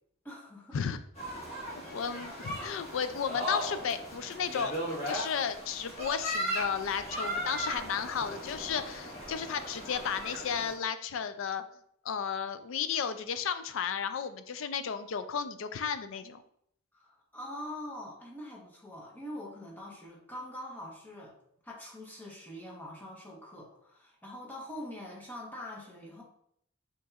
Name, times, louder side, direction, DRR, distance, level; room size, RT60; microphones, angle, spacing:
voice 1, 0.2-0.8 2.0-2.3 16.9-21.4 21.6-26.2, left 1 dB, 10° left, -4 dB, 1.0 m, -44 dB
sound 1, 1.2-10.7, equal, 30° left, 1.5 m, -37 dB
voice 2, 1.7-11.6 12.0-16.4, left 7 dB, 65° left, 11 dB, 0.4 m, -34 dB
6.2 x 2.9 x 2.4 m, 0.70 s
head